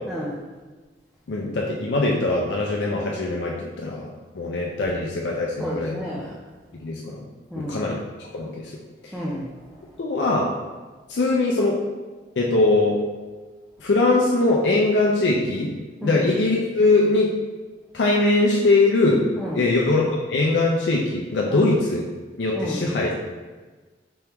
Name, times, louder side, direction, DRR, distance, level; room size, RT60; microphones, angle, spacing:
voice 1, 0.1-0.4 5.6-6.4 7.5-7.9 9.1-9.9 16.0-16.2 19.4-19.7 21.5-21.7 22.5-22.9, equal, ahead, -6 dB, 0.5 m, -31 dB
voice 2, 1.3-4.1 4.3-6.0 6.8-7.2 7.6-8.0 8.3-8.7 10.0-10.5 11.1-11.8 12.4-12.9 13.8-15.7 16.0-17.3 17.9-19.2 19.5-20.0 20.3-22.0 22.4-23.1, left 2 dB, 85° left, -2 dB, 0.5 m, -21 dB
4.4 x 3.5 x 2.9 m, 1.3 s
head